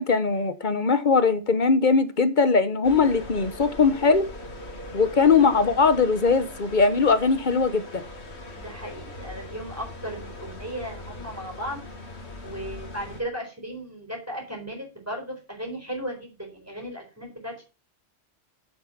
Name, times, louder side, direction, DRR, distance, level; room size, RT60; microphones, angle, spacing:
voice 1, 0.0-4.3 4.9-8.0, left 4 dB, 45° left, 1.1 m, -20 dB
sound 1, 2.8-13.2, left 1 dB, 75° left, 2.2 m, -40 dB
voice 2, 8.5-11.8 12.4-17.6, equal, 15° right, 4.2 m, -36 dB
9.4 x 8.1 x 5.7 m
omnidirectional pair, 1.1 m